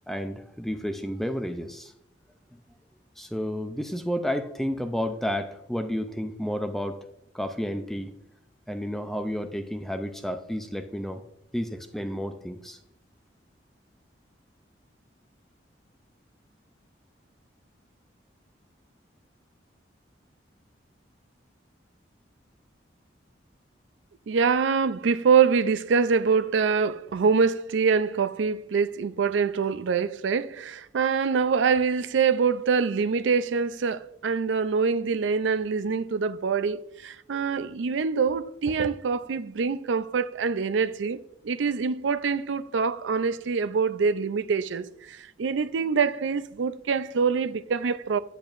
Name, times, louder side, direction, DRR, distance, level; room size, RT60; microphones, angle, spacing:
voice 1, 0.1-1.9 2.5-2.6 3.2-7.0 7.3-8.1 8.7-11.2 11.5-12.8, equal, ahead, 0.4 m, -31 dB
voice 2, 24.3-41.2 41.4-48.2, right 5 dB, 85° right, 0.4 m, -25 dB
8.6 x 8.2 x 2.5 m
head